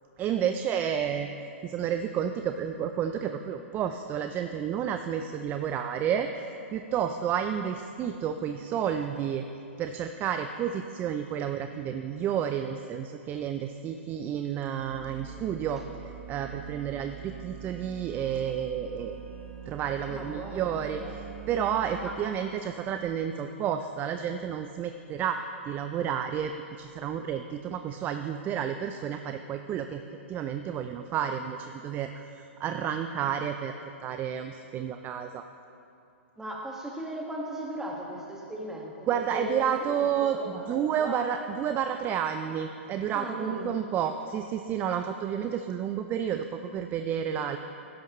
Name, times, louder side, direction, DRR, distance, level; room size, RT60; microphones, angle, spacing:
voice 1, 0.2-1.3 1.6-6.3 6.7-9.5 9.8-19.2 19.7-25.4 25.7-30.0 30.3-33.8 34.0-35.4 39.1-40.4 40.7-47.6, right 8 dB, 25° right, 7 dB, 0.5 m, -31 dB
sound 1, 14.8-22.1, right 8 dB, 65° right, 1.9 m, -43 dB
voice 2, 20.1-21.1 22.0-22.2 36.4-39.0 39.3-41.3 43.1-43.8, equal, 5° right, -1 dB, 1.7 m, -38 dB
15.5 x 12.0 x 3.1 m, 2.7 s
hypercardioid pair, 125°, 7 cm